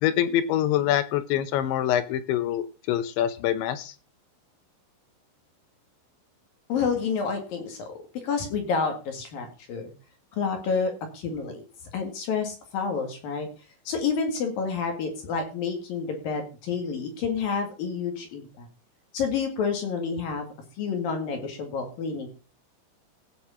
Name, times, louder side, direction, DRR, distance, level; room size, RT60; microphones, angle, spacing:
voice 1, 0.0-3.9, left 11 dB, 75° left, 12 dB, 3.0 m, -25 dB
voice 2, 6.7-8.0 8.2-9.9 10.3-11.6 11.9-13.5 13.8-18.7 19.1-20.5 20.8-22.3, left 5 dB, 55° left, 4 dB, 3.3 m, -29 dB
16.0 x 6.4 x 5.7 m, 0.34 s
omnidirectional pair, 5.7 m